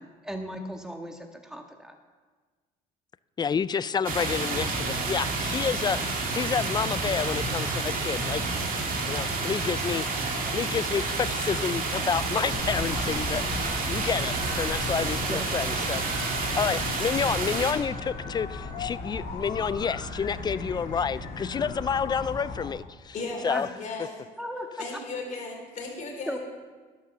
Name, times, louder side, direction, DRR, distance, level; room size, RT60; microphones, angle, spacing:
voice 1, 0.0-1.9 15.3-15.4 23.4-23.7 24.4-24.9 26.3-26.4, equal, 5° right, 3 dB, 1.6 m, -36 dB
voice 2, 3.4-8.5 8.8-23.1 23.4-23.7, left 6 dB, 25° left, 17 dB, 0.3 m, -29 dB
sound 1, 4.0-17.7, right 3 dB, 55° right, 2.3 m, -29 dB
sound 2, 5.1-10.3, right 2 dB, 20° right, 1.5 m, -44 dB
sound 3, 12.5-22.7, left 3 dB, 70° left, 2.5 m, -37 dB
voice 3, 23.1-23.5 23.8-24.1 24.8-26.4, left 3 dB, 50° left, 0 dB, 3.7 m, -35 dB
11.5 x 7.6 x 6.8 m, 1.4 s
cardioid pair, 110°, 17 cm